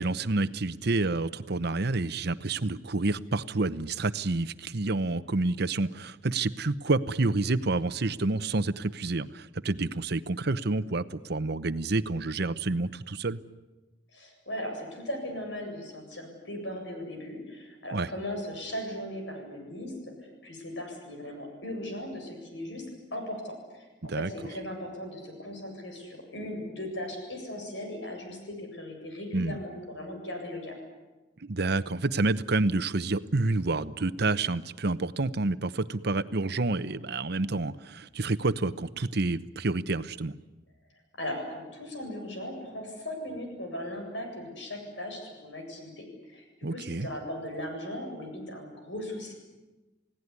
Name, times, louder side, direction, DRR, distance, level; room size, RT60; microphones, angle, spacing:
voice 1, 0.0-13.4 17.9-18.1 24.1-24.3 29.3-29.6 31.4-40.4 46.6-47.1, right 2 dB, 60° right, 13 dB, 0.9 m, -28 dB
voice 2, 14.1-19.9 20.2-22.8 23.1-30.7 41.2-49.3, left 1 dB, 75° left, 3 dB, 7.9 m, -38 dB
29.5 x 17.5 x 9.8 m, 1.1 s
head